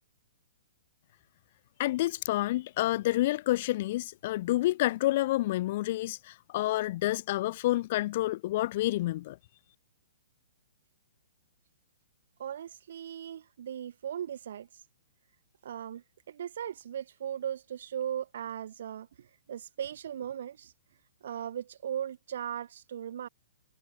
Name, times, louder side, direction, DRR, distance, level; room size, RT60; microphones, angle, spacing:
voice 1, 1.8-9.4, left 16 dB, 45° left, 0.5 m, -29 dB
voice 2, 12.4-14.7 15.6-20.7 21.2-23.3, right 9 dB, 65° right, 1.5 m, -38 dB
hypercardioid pair, 155°, 0 cm